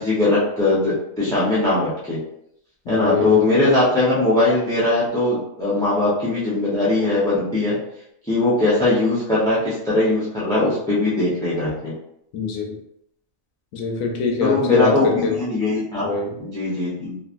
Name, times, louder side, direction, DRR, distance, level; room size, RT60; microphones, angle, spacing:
voice 1, 0.0-2.2 2.9-7.8 8.3-11.9 14.4-16.1 16.4-17.2, left 2 dB, 5° left, -9 dB, 0.5 m, -20 dB
voice 2, 2.9-3.3 12.3-12.8 13.7-15.3 16.0-16.4, left 5 dB, 75° left, 2 dB, 1.0 m, -22 dB
3.1 x 2.5 x 2.5 m, 0.74 s
omnidirectional pair, 1.4 m